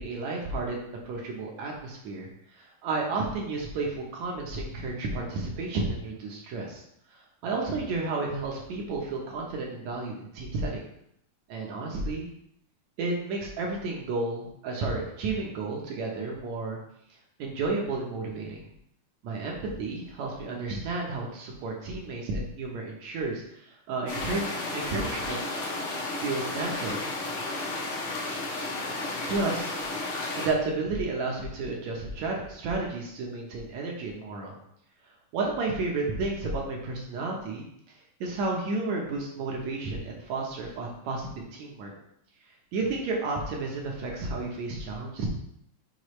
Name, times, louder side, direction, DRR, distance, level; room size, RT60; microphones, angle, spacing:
voice 1, 0.0-2.3 2.6-6.8 7.4-10.8 11.5-12.3 13.0-16.8 17.4-18.6 19.2-25.4 26.2-27.0 29.3-29.8 30.3-34.5 35.3-37.6 38.2-41.9 42.7-45.3, right 3 dB, 70° right, -1 dB, 2.0 m, -32 dB
sound 1, 24.1-30.5, left 2 dB, 60° left, 1.5 m, -33 dB
6.6 x 5.1 x 3.1 m, 0.74 s
omnidirectional pair, 3.9 m